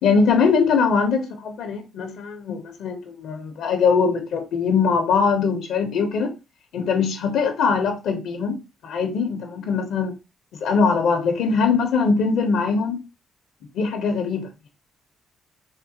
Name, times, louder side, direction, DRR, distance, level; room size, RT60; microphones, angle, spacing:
voice 1, 0.0-6.3 6.7-8.6 8.8-10.1 10.6-13.0 13.7-14.7, left 5 dB, 80° left, 0.6 m, -21 dB
3.5 x 2.1 x 2.8 m
cardioid pair, 90°, 0 cm